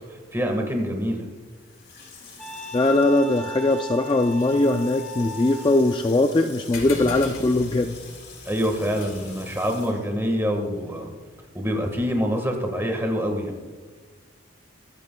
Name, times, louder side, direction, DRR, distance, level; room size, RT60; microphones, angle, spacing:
voice 1, 0.1-1.2 8.4-11.1 11.5-13.6, equal, 10° right, 3 dB, 1.5 m, -26 dB
Water tap faucet / Sink (filling or washing), 1.4-11.1 11.4-11.5, left 5 dB, 55° left, 3.8 m, -46 dB
Wind instrument woodwind instrument, 2.4-6.0, equal, 5° left, 1.0 m, -38 dB
voice 2, 2.7-8.0, left 2 dB, 25° left, 6 dB, 0.3 m, -21 dB
sound 1, 6.7-11.7, left 3 dB, 80° left, 2.0 m, -41 dB
23.5 x 9.6 x 2.3 m, 1.4 s
head